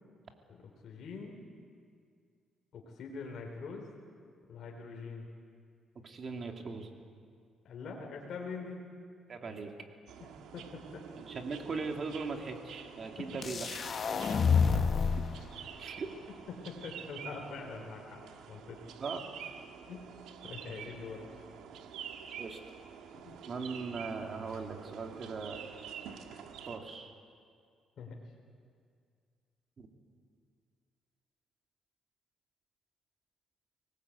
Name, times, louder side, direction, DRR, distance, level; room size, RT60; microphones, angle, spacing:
voice 1, 0.5-1.4 2.7-3.9 4.5-5.3 7.6-8.8 10.2-11.0 13.2-13.4 14.1-14.6 16.3-18.8 19.9-20.1 20.4-21.3 23.1-23.4 28.0-28.2, left 4 dB, 65° left, -1 dB, 3.2 m, -44 dB
voice 2, 6.0-6.9 9.3-9.7 11.2-13.7 15.1-15.2 15.8-16.1 19.0-19.2 22.4-22.6 23.5-25.7 26.7-27.1 29.8-29.9, right 4 dB, 45° right, 3 dB, 2.8 m, -39 dB
sound 1, 10.1-26.8, right 8 dB, 85° right, 1.7 m, -48 dB
sound 2, 13.4-15.4, left 6 dB, 45° left, 1.0 m, -28 dB
23.5 x 19.5 x 8.4 m, 2.2 s
cardioid pair, 90°, 0 cm